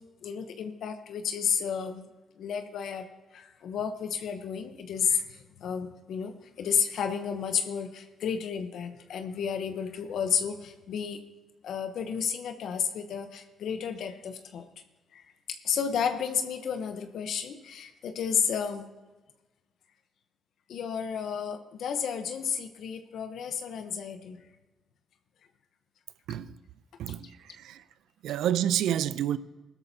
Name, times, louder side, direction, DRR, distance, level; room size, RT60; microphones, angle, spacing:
voice 1, 0.2-2.1 2.4-3.1 3.3-11.2 11.6-14.6 15.1-15.2 15.6-18.9 20.7-24.4 27.2-27.3, left 7 dB, 70° left, 0.9 m, -32 dB
voice 2, 26.3-26.6 27.0-27.8 28.2-29.4, right 11 dB, 80° right, 0.5 m, -29 dB
17.0 x 13.0 x 2.8 m
cardioid pair, 90°, 0 cm